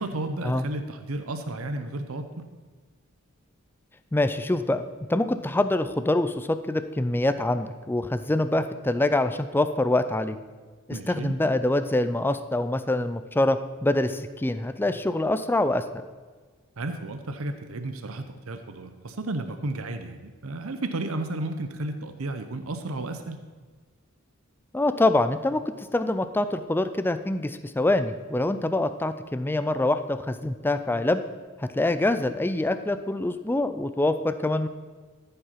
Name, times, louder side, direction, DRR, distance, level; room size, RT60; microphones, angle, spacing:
voice 1, 0.0-2.5 10.9-11.4 16.8-23.4, right 2 dB, 75° right, 8 dB, 0.8 m, -33 dB
voice 2, 4.1-4.8 5.1-10.4 10.9-16.0 24.7-31.2 31.6-34.7, left 2 dB, 10° left, 10 dB, 0.4 m, -25 dB
13.5 x 5.6 x 5.8 m, 1.5 s
head